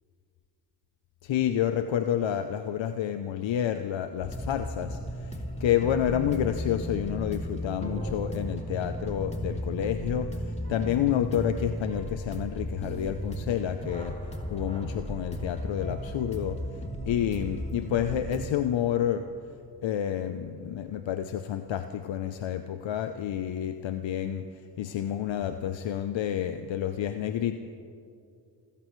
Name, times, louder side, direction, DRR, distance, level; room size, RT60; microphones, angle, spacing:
voice 1, 1.2-14.2 14.5-16.8 17.0-19.3 19.8-27.6, left 10 dB, 75° left, 9 dB, 0.7 m, -29 dB
sound 1, 4.2-18.4, equal, 15° left, 2.8 m, -35 dB
27.0 x 15.5 x 3.2 m, 2.5 s
supercardioid pair, 50°, 45 cm